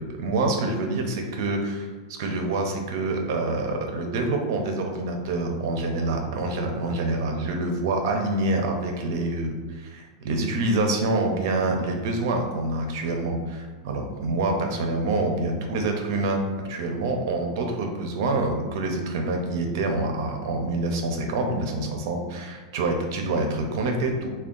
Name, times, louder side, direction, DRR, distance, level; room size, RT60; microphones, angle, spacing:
voice 1, 0.0-16.4 16.7-24.3, right 2 dB, 45° right, 3 dB, 0.5 m, -26 dB
3.5 x 2.2 x 3.7 m, 1.4 s
supercardioid pair, 175°, 2 cm